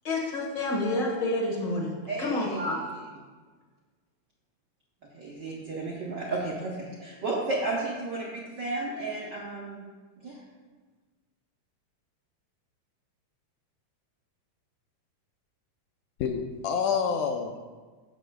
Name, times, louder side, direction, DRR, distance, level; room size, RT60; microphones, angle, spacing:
voice 1, 0.0-1.9 2.2-2.8, left 2 dB, 45° left, -3 dB, 1.8 m, -28 dB
voice 2, 2.1-3.0 5.1-9.8 10.2-10.4, right 2 dB, 65° right, -5 dB, 1.1 m, -33 dB
voice 3, 16.2-17.6, left 6 dB, 80° left, 4 dB, 1.8 m, -28 dB
14.5 x 6.1 x 2.2 m, 1.4 s
omnidirectional pair, 3.3 m